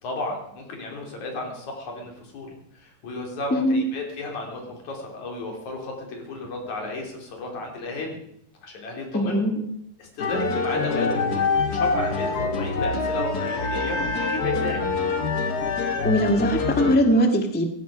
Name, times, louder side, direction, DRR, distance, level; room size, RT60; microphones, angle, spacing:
voice 1, 0.0-2.5 2.7-8.2 8.6-9.4 10.0-14.8, left 2 dB, 80° left, 1 dB, 4.8 m, -33 dB
voice 2, 3.5-3.8 9.1-9.7 16.0-17.7, equal, 10° left, 5 dB, 0.6 m, -21 dB
sound 1, 10.2-17.0, left 4 dB, 45° left, 1.5 m, -25 dB
17.0 x 15.5 x 5.1 m, 0.75 s
omnidirectional pair, 3.3 m